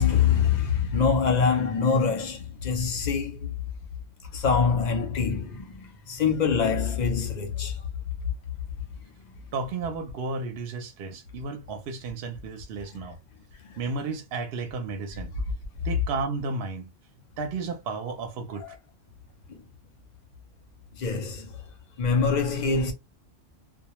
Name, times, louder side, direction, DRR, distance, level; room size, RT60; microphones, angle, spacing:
voice 1, 0.0-3.5 4.3-7.8 13.7-13.8 19.5-19.6 21.0-21.5 22.0-22.9, left 6 dB, 50° left, 0.5 m, -24 dB
voice 2, 9.5-13.2 13.8-15.3 15.8-16.9 17.4-18.8, right 4 dB, 65° right, 0.7 m, -33 dB
2.2 x 2.0 x 2.9 m
omnidirectional pair, 1.3 m